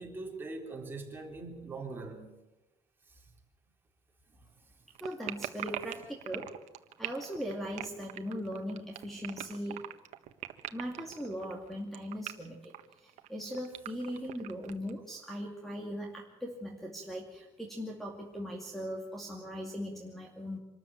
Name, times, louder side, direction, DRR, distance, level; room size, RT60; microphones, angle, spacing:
voice 1, 0.0-2.4 3.1-3.2 4.3-4.4, right 3 dB, 15° right, 3.8 m, -42 dB
sound 1, 4.9-14.9, right 14 dB, 70° right, 1.4 m, -41 dB
voice 2, 5.0-6.5 7.0-9.8 10.7-12.7 13.0-20.6, equal, ahead, 2.4 m, -39 dB
26.0 x 13.5 x 8.9 m
cardioid pair, 160°, 12 cm